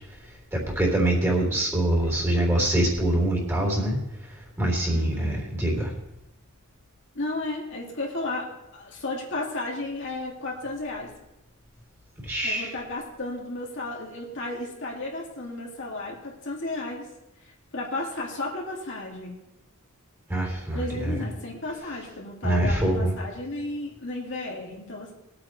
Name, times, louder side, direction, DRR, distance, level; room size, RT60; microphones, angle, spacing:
voice 1, 0.5-5.9 12.2-12.7 20.3-21.2 22.4-23.1, right 1 dB, 10° right, -1 dB, 3.5 m, -25 dB
voice 2, 4.9-5.5 7.1-8.5 8.7-11.1 12.4-17.1 17.7-19.4 20.7-25.1, left 2 dB, 55° left, -2 dB, 2.4 m, -33 dB
21.5 x 8.8 x 3.3 m, 0.90 s
head